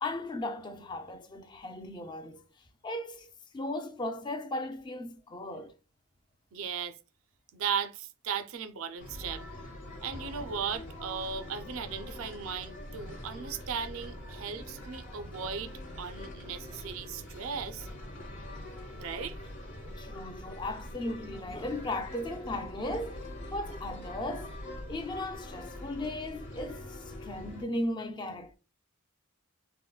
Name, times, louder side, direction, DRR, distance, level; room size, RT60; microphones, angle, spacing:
voice 1, 0.0-2.4 2.8-5.7 20.0-23.2 23.5-24.6 24.9-28.6, left 1 dB, 20° left, 0.3 m, -36 dB
voice 2, 6.5-7.0 7.5-9.4 10.0-17.9 19.0-19.4, right 6 dB, 75° right, 0.4 m, -37 dB
sound 1, 9.0-27.6, left 1 dB, 60° left, 1.0 m, -43 dB
3.6 x 2.1 x 2.2 m
head